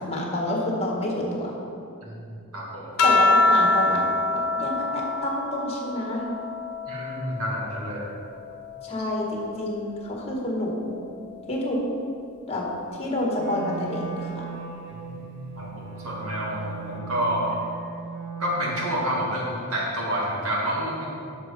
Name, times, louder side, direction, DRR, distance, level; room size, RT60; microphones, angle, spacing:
voice 1, 0.0-1.5 3.0-4.1 4.3-6.3 8.8-11.0 11.5-11.8 12.5-12.6 13.0-14.5, left 1 dB, 30° left, -2 dB, 1.7 m, -28 dB
voice 2, 2.5-2.9 6.9-8.1 14.9-15.2 15.6-17.6 18.4-21.1, equal, 70° right, -3 dB, 2.3 m, -29 dB
sound 1, 3.0-7.8 8.2-10.0 11.2-11.7, left 2 dB, 75° left, 0.7 m, -26 dB
Wind instrument woodwind instrument, 13.3-19.3, right 6 dB, 55° right, 1.5 m, -38 dB
9.1 x 6.6 x 5.5 m, 2.5 s
head